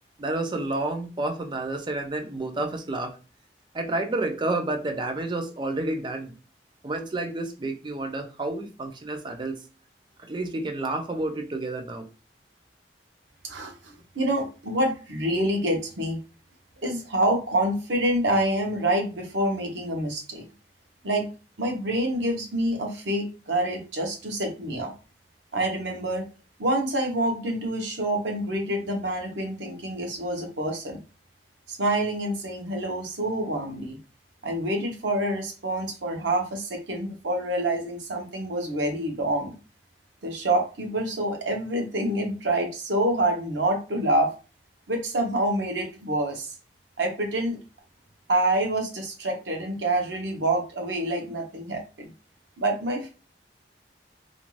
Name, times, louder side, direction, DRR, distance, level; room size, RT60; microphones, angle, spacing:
voice 1, 0.2-3.1 3.7-6.3 6.8-9.6 10.3-12.1, right 2 dB, 25° right, 5 dB, 0.4 m, -30 dB
voice 2, 13.4-16.2 16.8-20.5 21.0-21.3 21.6-24.9 25.5-26.3 26.6-31.0 31.7-34.0 34.4-39.5 40.2-44.3 44.9-46.5 47.0-47.6 48.3-52.1 52.6-53.1, right 1 dB, 85° right, 2 dB, 0.7 m, -27 dB
2.5 x 2.2 x 3.0 m, 0.34 s
head